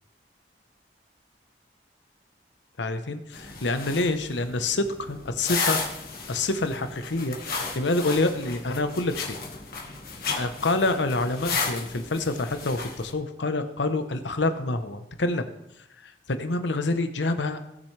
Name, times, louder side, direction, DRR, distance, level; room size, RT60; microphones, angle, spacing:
voice 1, 2.8-5.8 6.3-9.4 10.4-15.5 16.0-17.6, left 2 dB, 80° left, 9 dB, 0.9 m, -27 dB
sound 1, 3.3-13.1, left 4 dB, 55° left, 1.6 m, -34 dB
16.5 x 6.9 x 3.3 m, 0.86 s
head